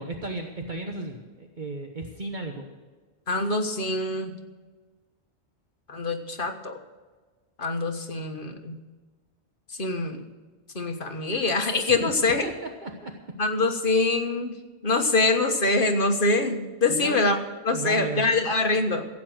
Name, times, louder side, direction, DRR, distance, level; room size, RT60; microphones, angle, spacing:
voice 1, 0.0-2.6 12.0-12.1 12.4-13.1 16.9-17.2 17.7-18.3, right 2 dB, 45° right, 3 dB, 1.3 m, -34 dB
voice 2, 3.3-4.3 5.9-6.8 7.6-8.8 9.8-10.2 10.7-12.4 13.4-14.5 14.8-17.4 17.6-19.1, left 3 dB, 50° left, 5 dB, 1.6 m, -24 dB
15.0 x 8.6 x 7.9 m, 1.4 s
omnidirectional pair, 1.1 m